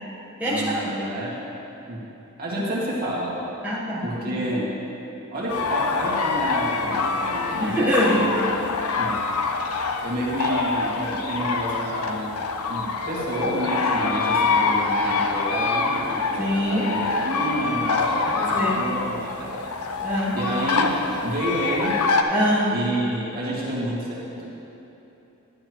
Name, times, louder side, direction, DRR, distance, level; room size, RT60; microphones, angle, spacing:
voice 1, 0.4-1.4 1.8-2.1 2.4-3.4 4.0-4.7 5.3-7.8 8.1-8.6 8.9-9.2 9.7-19.8 20.3-20.9 21.2-22.0 22.7-24.5, right 1 dB, 45° right, -6 dB, 2.1 m, -29 dB
voice 2, 3.6-4.4 7.6-8.2 16.4-16.9 18.5-18.9 20.0-20.3 22.3-22.7, equal, 5° right, -9 dB, 1.2 m, -23 dB
sound 1, 5.5-22.2, left 4 dB, 70° left, 0.7 m, -25 dB
11.5 x 11.0 x 3.1 m, 3.0 s
head